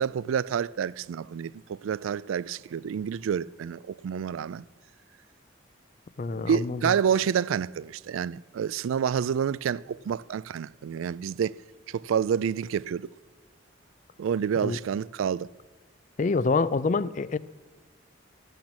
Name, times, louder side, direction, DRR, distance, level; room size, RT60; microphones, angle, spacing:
voice 1, 0.0-4.6 6.3-11.6 11.9-13.1 14.2-15.5, right 7 dB, 85° right, 0.3 m, -28 dB
voice 2, 6.2-6.9 14.6-14.8 16.2-17.4, left 4 dB, 40° left, 0.4 m, -26 dB
13.5 x 9.0 x 7.3 m
head